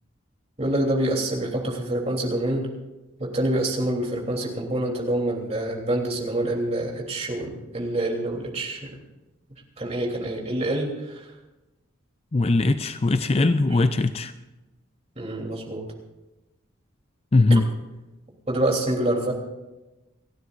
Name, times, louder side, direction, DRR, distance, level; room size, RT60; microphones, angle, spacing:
voice 1, 0.6-2.7 3.2-8.9 9.8-11.3 15.2-15.8 18.5-19.3, right 1 dB, 30° right, -1 dB, 3.3 m, -26 dB
voice 2, 12.3-14.3 17.3-17.7, left 2 dB, 30° left, 10 dB, 0.5 m, -20 dB
29.5 x 12.5 x 2.6 m, 1.0 s
head